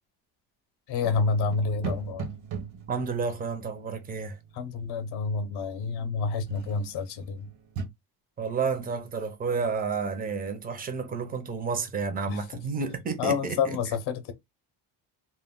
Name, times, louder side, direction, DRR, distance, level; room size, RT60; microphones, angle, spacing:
voice 1, 0.9-2.3 4.5-7.5 12.3-12.6 13.2-14.3, left 4 dB, 60° left, 0.6 m, -29 dB
sound 1, 1.0-4.8 6.5-7.0 7.4-7.8, right 6 dB, 85° right, 0.9 m, -39 dB
voice 2, 2.9-4.4 8.4-13.8, right 5 dB, 20° right, 0.4 m, -31 dB
2.2 x 2.1 x 3.5 m
cardioid pair, 150°, 44 cm